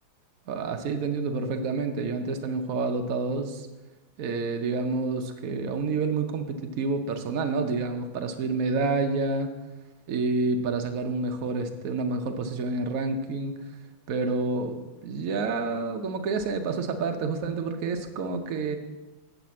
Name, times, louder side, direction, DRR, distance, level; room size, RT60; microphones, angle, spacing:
voice 1, 0.5-3.7 4.2-9.5 10.1-13.6 14.1-18.8, right 3 dB, 90° right, 5 dB, 0.7 m, -28 dB
8.0 x 5.1 x 7.4 m, 1.1 s
omnidirectional pair, 2.3 m